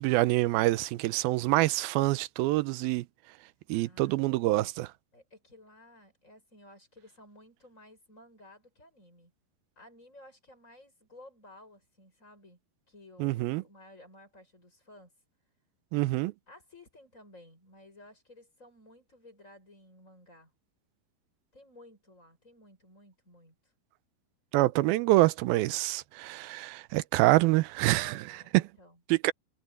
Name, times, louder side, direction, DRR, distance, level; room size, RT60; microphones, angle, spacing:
voice 1, 0.0-3.1 3.7-4.9 13.2-13.6 15.9-16.3 24.5-28.6 29.1-29.3, right 18 dB, 80° right, 2.4 m, -26 dB
voice 2, 3.7-4.4 5.1-9.3 9.8-12.6 12.9-15.1 16.5-20.5 21.5-23.7 28.0-29.0, left 1 dB, 20° left, 7.3 m, -55 dB
omnidirectional pair, 4.5 m